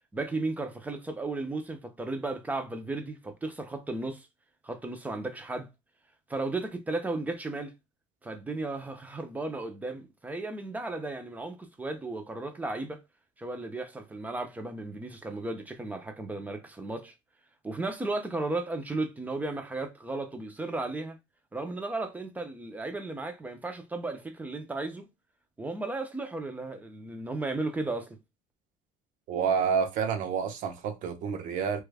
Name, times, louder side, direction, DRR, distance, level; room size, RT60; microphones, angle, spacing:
voice 1, 0.1-4.3 4.6-5.7 6.3-7.7 8.2-13.0 13.4-17.1 17.6-21.2 21.5-25.1 25.6-28.2, right 2 dB, 10° right, 0.5 m, -35 dB
voice 2, 29.3-31.8, right 6 dB, 60° right, 0.7 m, -29 dB
3.1 x 2.3 x 3.3 m
cardioid pair, 150°, 15 cm